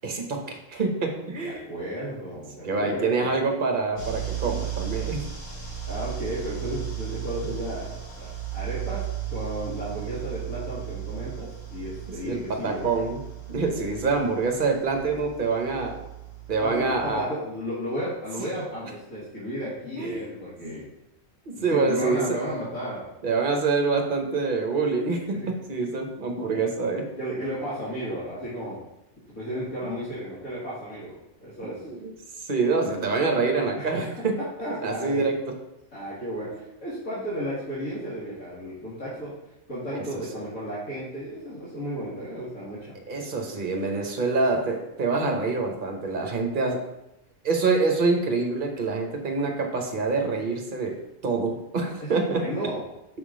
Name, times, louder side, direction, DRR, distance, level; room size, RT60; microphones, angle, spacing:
voice 1, 0.0-1.7 2.6-5.3 12.2-13.2 13.5-16.0 16.5-17.3 20.0-20.3 20.6-20.8 21.5-22.4 23.2-27.1 31.6-32.1 32.4-34.4 34.8-35.4 39.9-40.2 43.1-46.9 47.4-52.5, right 4 dB, 45° right, 3 dB, 1.0 m, -26 dB
voice 2, 1.4-3.3 5.9-7.9 8.2-12.9 16.6-20.9 21.5-23.0 25.3-25.5 26.5-26.6 27.2-28.8 29.3-31.1 31.4-31.8 33.8-34.1 34.6-35.2 35.9-39.3 39.7-42.9 52.0-52.8, equal, 90° left, -10 dB, 2.1 m, -33 dB
sound 1, 4.0-17.2, right 12 dB, 65° left, 1.8 m, -35 dB
6.0 x 3.6 x 4.9 m, 0.90 s
omnidirectional pair, 1.4 m